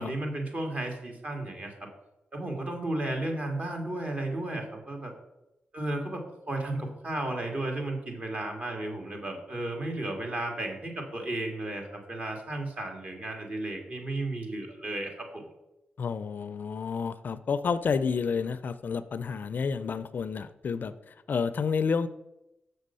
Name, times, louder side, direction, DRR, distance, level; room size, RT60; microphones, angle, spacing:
voice 1, 0.0-1.7 2.3-5.1 5.7-15.4, right 2 dB, 40° right, 2 dB, 1.9 m, -34 dB
voice 2, 16.0-22.1, left 5 dB, 55° left, 14 dB, 0.4 m, -30 dB
6.7 x 6.2 x 5.5 m, 0.93 s
cardioid pair, 85°, 4 cm